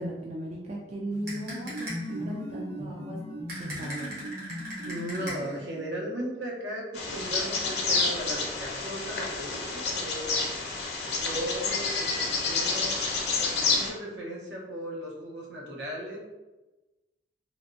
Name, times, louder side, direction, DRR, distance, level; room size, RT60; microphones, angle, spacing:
voice 1, 0.0-3.2 3.5-4.1, right 1 dB, 40° right, -2 dB, 0.4 m, -37 dB
sound 1, 1.1-6.0, equal, 15° left, 0.5 m, -38 dB
sound 2, 1.3-2.2 3.5-5.7, equal, 60° right, 1.2 m, -40 dB
voice 2, 4.8-10.3 11.2-12.2 12.5-13.0 13.4-16.2, equal, 85° right, -4 dB, 0.9 m, -36 dB
Bird vocalization bird call bird song, 6.9-13.9, left 4 dB, 65° left, 0.6 m, -29 dB
3.5 x 2.3 x 2.5 m, 1.1 s
head